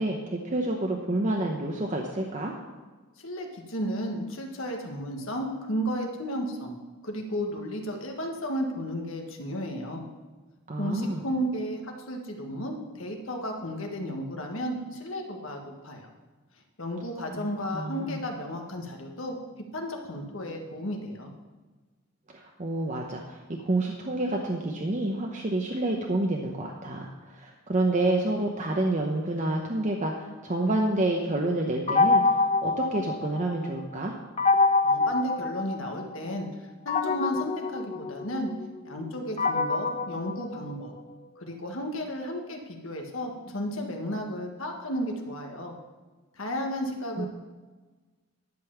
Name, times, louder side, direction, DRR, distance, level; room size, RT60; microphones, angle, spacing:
voice 1, 0.0-2.5 10.7-11.2 17.2-17.5 17.7-18.2 22.3-32.2 32.6-34.1 47.2-47.3, right 2 dB, 35° right, 0 dB, 0.9 m, -28 dB
voice 2, 3.2-6.7 7.0-10.0 10.8-16.1 16.8-19.3 19.7-21.3 34.8-36.5 36.8-38.5 38.8-40.9 41.4-45.7 46.4-47.3, equal, 70° left, 2 dB, 1.6 m, -33 dB
sound 1, 31.9-33.7 34.4-36.2 36.9-41.1, left 3 dB, 30° left, 0.6 m, -26 dB
11.5 x 5.4 x 7.1 m, 1.3 s
head